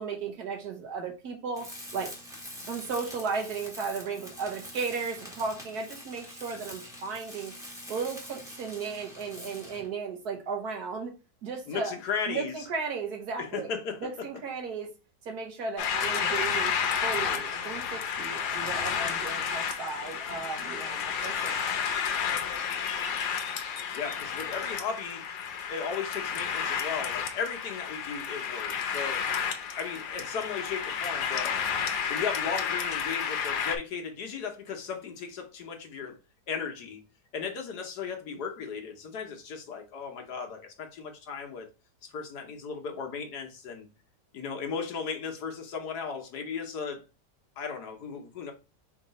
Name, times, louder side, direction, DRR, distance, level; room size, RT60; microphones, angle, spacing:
voice 1, 0.0-2.1 2.7-7.5 7.9-11.1 11.4-11.9 12.3-13.7 14.0-14.9 15.2-16.7 17.0-21.7, right 5 dB, 60° right, 1.4 m, -35 dB
Tools, 1.5-9.9, equal, ahead, 1.0 m, -45 dB
voice 2, 11.7-12.5 13.4-14.0 23.9-25.3 25.7-29.3 29.8-31.6 32.1-36.2 36.5-37.0 37.3-41.7 42.0-43.9 44.3-47.0 47.6-48.5, left 6 dB, 65° left, 1.3 m, -36 dB
sound 1, 15.8-33.8, left 7 dB, 85° left, 1.3 m, -31 dB
4.6 x 2.8 x 4.0 m
omnidirectional pair, 2.0 m